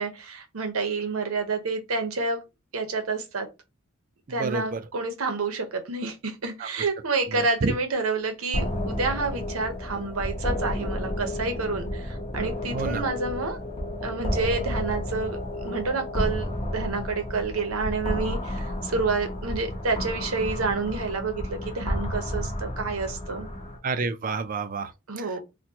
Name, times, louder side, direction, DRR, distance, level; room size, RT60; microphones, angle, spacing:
voice 1, 0.0-2.4 2.7-3.5 4.3-13.6 14.0-16.5 16.7-23.5 25.1-25.4, right 3 dB, 85° right, 0.8 m, -29 dB
voice 2, 4.4-4.8 7.3-7.7 12.7-13.0 23.8-24.9 25.2-25.3, right 4 dB, 40° right, 0.4 m, -29 dB
sound 1, 8.5-23.8, left 1 dB, 25° left, 0.9 m, -31 dB
4.2 x 2.2 x 2.8 m
head